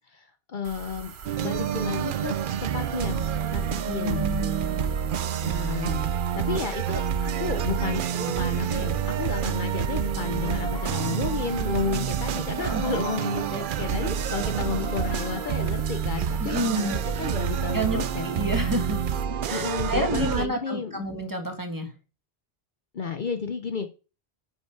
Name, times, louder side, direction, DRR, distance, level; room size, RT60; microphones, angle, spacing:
voice 1, 0.5-1.1 1.4-2.3 2.7-3.2 3.5-4.3 5.4-6.0 6.4-18.3 19.5-21.0 22.9-23.9, left 6 dB, 55° left, 7 dB, 0.8 m, -32 dB
sound 1, 0.6-19.2, right 5 dB, 80° right, 1.1 m, -42 dB
sound 2, 1.3-20.5, right 8 dB, 60° right, 0.7 m, -28 dB
voice 2, 3.9-4.8 12.6-12.8 16.4-17.0 17.7-19.0 19.4-21.9, right 1 dB, 20° right, 4 dB, 1.5 m, -29 dB
sound 3, 10.2-16.4, left 1 dB, 35° left, 3.8 m, -42 dB
9.3 x 5.8 x 4.5 m, 0.34 s
omnidirectional pair, 1.1 m